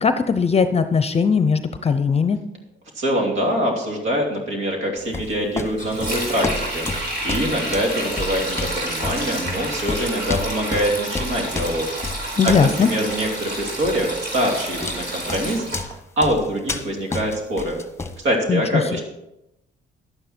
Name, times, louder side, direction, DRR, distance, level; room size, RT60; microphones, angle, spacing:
voice 1, 0.0-2.4 12.4-12.9 18.5-18.6 18.9-19.0, left 6 dB, 30° left, 10 dB, 0.6 m, -19 dB
voice 2, 2.9-11.9 12.4-17.8 18.2-19.0, equal, 80° right, 1 dB, 2.9 m, -24 dB
sound 1, 5.0-12.8 13.1-13.4 13.8-14.1 14.6-15.0 15.3-18.3, left 3 dB, 15° left, 1.1 m, -30 dB
Sink (filling or washing), 5.7-15.8, right 1 dB, 60° right, 4.4 m, -29 dB
11.0 x 9.3 x 4.4 m, 0.89 s
cardioid pair, 90°, 20 cm